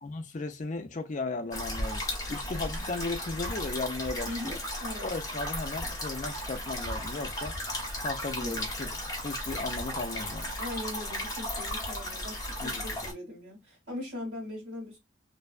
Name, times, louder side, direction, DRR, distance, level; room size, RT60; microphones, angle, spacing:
voice 1, 0.0-2.0 2.3-4.6 5.0-7.5 8.0-8.9 9.2-10.5 12.6-13.1, left 3 dB, 40° left, 0.4 m, -36 dB
sound 1, 1.5-13.1, left 1 dB, 15° left, 0.9 m, -35 dB
voice 2, 4.2-5.1 8.4-8.6 10.6-15.0, left 1 dB, 80° right, 1.4 m, -40 dB
2.6 x 2.2 x 2.4 m
head